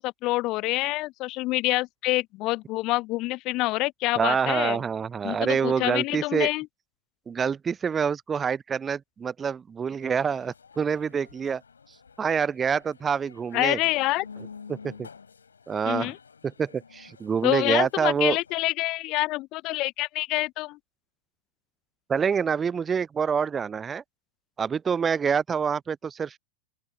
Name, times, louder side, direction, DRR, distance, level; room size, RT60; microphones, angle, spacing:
voice 1, 0.0-4.8 5.2-6.7 13.5-14.3 15.9-16.2 17.4-20.8, left 20 dB, 40° left, 0.3 m, -27 dB
voice 2, 4.2-6.5 7.3-11.6 12.2-13.8 14.7-15.1 15.7-16.1 16.4-18.4 22.1-24.0 24.6-26.4, right 6 dB, 20° right, 0.5 m, -26 dB
sound 1, 10.0-18.7, left 5 dB, 75° left, 2.8 m, -49 dB
open air
figure-of-eight pair, 90°, 0 cm